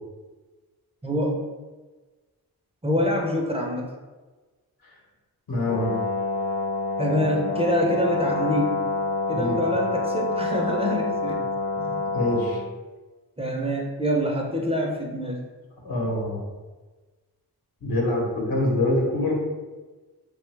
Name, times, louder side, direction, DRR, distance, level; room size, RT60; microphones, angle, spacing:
voice 1, 1.0-1.4 2.8-3.9 7.0-8.8 9.3-11.4 11.8-12.0 13.4-15.4, equal, 15° right, -1 dB, 0.5 m, -26 dB
voice 2, 5.5-6.0 9.3-9.6 12.1-12.6 15.8-16.5 17.8-19.4, left 1 dB, 65° left, -2 dB, 1.0 m, -25 dB
Brass instrument, 5.7-12.7, left 3 dB, 90° left, 0.5 m, -27 dB
2.7 x 2.2 x 3.2 m, 1.3 s
cardioid pair, 50°, 38 cm